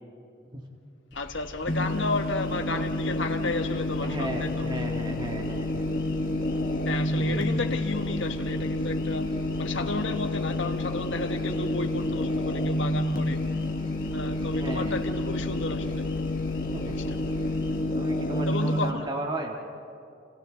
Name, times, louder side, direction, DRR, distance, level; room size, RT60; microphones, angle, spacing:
voice 1, 1.1-4.7 6.8-9.3 9.6-13.4 14.1-16.0 16.8-17.0 18.5-19.1, left 3 dB, 85° left, 5 dB, 1.4 m, -32 dB
sound 1, 1.1-17.8, left 1 dB, 65° left, 3.6 m, -44 dB
sound 2, 1.7-18.9, left 1 dB, 45° left, 1.3 m, -29 dB
voice 2, 4.0-5.9 7.1-7.5 14.5-14.9 16.7-17.0 17.7-19.6, right 1 dB, 25° right, 1 dB, 1.7 m, -35 dB
30.0 x 28.0 x 3.9 m, 2.6 s
head